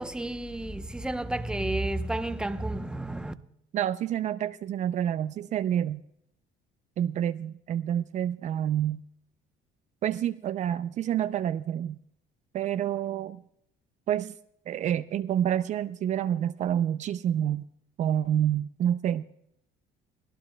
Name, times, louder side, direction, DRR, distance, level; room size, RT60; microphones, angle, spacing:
voice 1, 0.0-3.3, right 1 dB, 5° right, 0.8 m, -31 dB
voice 2, 3.7-6.0 7.0-9.0 10.0-12.0 12.5-13.4 14.1-14.3 14.7-17.6 18.0-19.2, right 10 dB, 50° right, 0.4 m, -28 dB
23.5 x 15.5 x 2.2 m
cardioid pair, 110°, 16 cm